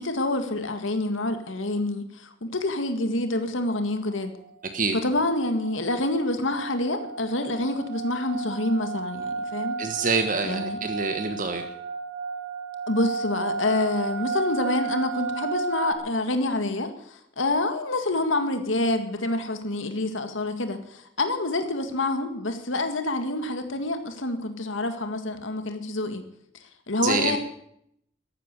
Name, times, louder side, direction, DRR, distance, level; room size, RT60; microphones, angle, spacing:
voice 1, 0.0-4.3 5.0-9.8 10.4-10.8 12.9-26.2 26.9-27.4, left 2 dB, 85° left, 7 dB, 2.0 m, -27 dB
sound 1, 3.7-3.8 4.1-4.5 4.9-15.9, right 5 dB, 85° right, 3.3 m, -33 dB
voice 2, 9.8-11.7 27.0-27.4, right 4 dB, 45° right, 7 dB, 1.4 m, -26 dB
14.0 x 12.0 x 8.3 m, 0.72 s
head